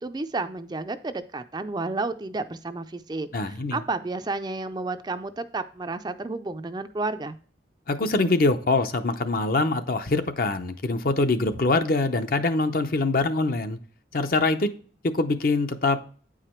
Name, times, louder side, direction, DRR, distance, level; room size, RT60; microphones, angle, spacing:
voice 1, 0.0-7.3, right 3 dB, 25° right, 0.4 m, -31 dB
voice 2, 3.3-3.8 7.9-13.8 14.1-14.7 15.0-16.0, left 3 dB, 50° left, 0.7 m, -24 dB
9.2 x 4.9 x 4.4 m
head